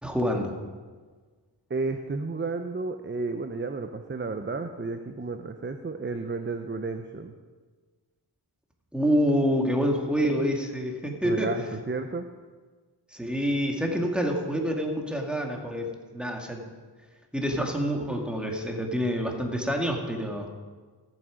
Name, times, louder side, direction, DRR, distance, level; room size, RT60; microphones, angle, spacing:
voice 1, 0.0-0.5 8.9-11.5 13.1-16.6 17.3-20.5, equal, ahead, 1 dB, 2.1 m, -27 dB
voice 2, 1.7-7.3 11.2-12.3, right 3 dB, 25° right, 7 dB, 0.7 m, -32 dB
15.0 x 7.4 x 5.1 m, 1.4 s
cardioid pair, 40°, 42 cm